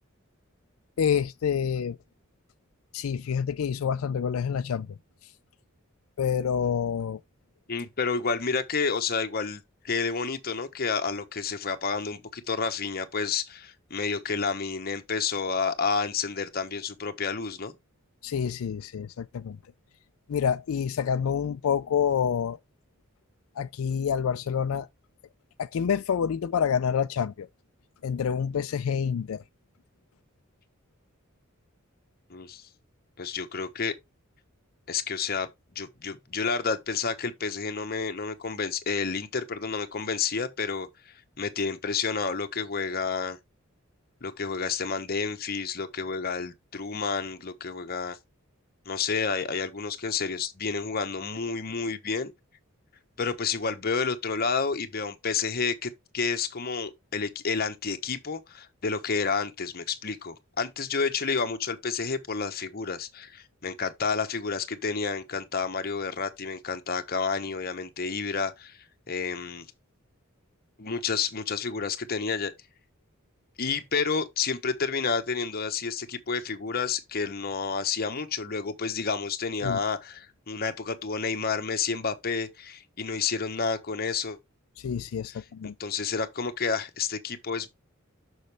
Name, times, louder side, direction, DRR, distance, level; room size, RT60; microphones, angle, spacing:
voice 1, 1.0-2.0 2.9-5.0 6.2-7.2 18.2-19.6 20.3-22.6 23.6-24.9 25.6-27.5 28.0-29.4 79.6-79.8 84.8-85.7, left 7 dB, 90° left, 0.4 m, -27 dB
voice 2, 7.7-17.7 32.3-32.7 33.2-33.9 34.9-35.5 35.7-43.4 44.2-48.2 48.9-52.3 53.2-68.8 69.1-69.6 70.8-72.5 73.6-84.4 85.8-87.7, left 5 dB, 50° left, 1.0 m, -30 dB
6.4 x 6.3 x 3.4 m
head